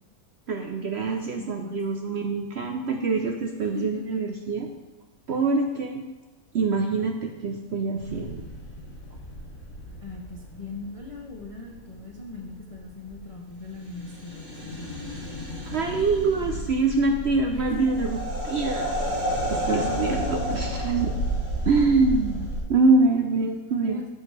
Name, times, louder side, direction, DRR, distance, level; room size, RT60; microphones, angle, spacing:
voice 1, 0.5-4.7 5.3-6.0 6.5-8.4 15.7-18.2 18.4-18.9 19.5-21.1 21.7-24.0, right 3 dB, 60° right, 3 dB, 0.7 m, -25 dB
voice 2, 1.4-1.8 3.6-4.2 5.3-5.4 10.0-14.5 14.8-15.0 17.5-18.1 19.7-21.1 23.7-24.1, left 3 dB, 40° left, 0 dB, 0.5 m, -39 dB
sound 1, 8.0-22.6, equal, 45° right, 3.5 m, -32 dB
13.0 x 4.8 x 3.3 m, 1.2 s
omnidirectional pair, 1.6 m